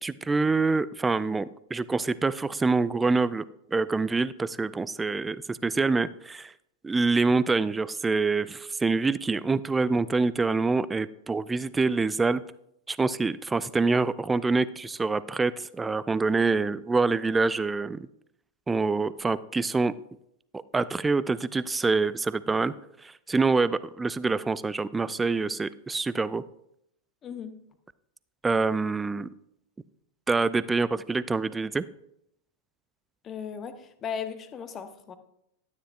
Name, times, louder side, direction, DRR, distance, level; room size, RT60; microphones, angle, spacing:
voice 1, 0.0-3.4 3.7-6.5 6.8-12.4 12.9-18.1 18.7-19.9 20.5-22.7 23.0-26.4 28.4-29.3 30.3-31.8, right 3 dB, 10° right, 17 dB, 0.3 m, -26 dB
voice 2, 27.2-27.5 33.2-35.1, left 7 dB, 25° left, 10 dB, 0.8 m, -36 dB
12.5 x 9.5 x 2.4 m, 0.76 s
figure-of-eight pair, 90°, 0 cm